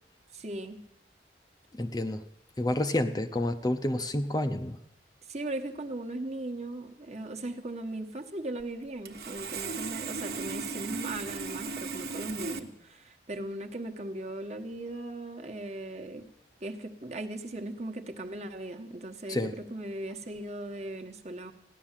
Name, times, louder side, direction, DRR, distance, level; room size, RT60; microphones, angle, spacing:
voice 1, 0.3-0.8 5.3-16.2 16.6-21.5, right 1 dB, 40° right, 4 dB, 1.2 m, -38 dB
voice 2, 1.8-2.2 2.6-4.8 19.3-19.5, left 1 dB, 20° left, 8 dB, 0.6 m, -29 dB
Sawing, 8.6-8.7 9.1-12.6, right 4 dB, 60° right, 1.2 m, -36 dB
16.0 x 11.0 x 7.4 m, 0.81 s
head